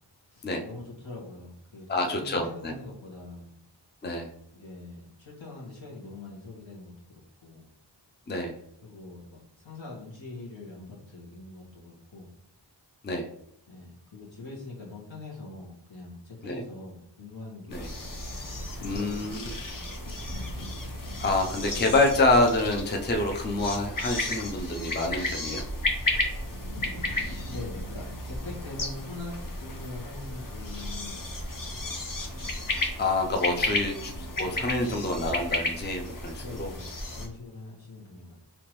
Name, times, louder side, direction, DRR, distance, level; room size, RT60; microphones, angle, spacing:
voice 1, 0.3-3.5 4.5-6.9 7.4-7.7 8.8-12.3 13.7-17.9 18.4-19.9 27.5-31.6 33.7-33.8 36.3-38.4, left 2 dB, 80° left, -4 dB, 1.5 m, -43 dB
voice 2, 1.9-2.7 4.0-4.3 8.3-8.5 13.0-13.3 16.4-16.6 17.7-17.9 18.8-19.5 21.2-25.6 33.0-34.1 34.4-36.7, left 2 dB, 25° left, 3 dB, 0.5 m, -27 dB
sound 1, 17.7-37.3, left 1 dB, 45° left, 0.8 m, -33 dB
3.5 x 2.9 x 3.0 m, 0.74 s
wide cardioid pair, 55°, 45 cm